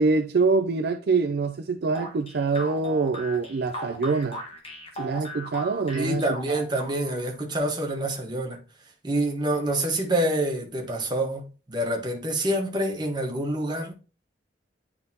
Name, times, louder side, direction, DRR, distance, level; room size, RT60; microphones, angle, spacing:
voice 1, 0.0-4.4 5.0-6.6, right 4 dB, 60° right, 0.4 m, -25 dB
sound 1, 1.9-7.3, right 1 dB, 35° left, 1.4 m, -38 dB
voice 2, 5.9-8.6 9.0-13.9, right 1 dB, 25° right, 1.3 m, -27 dB
9.4 x 3.6 x 2.8 m
head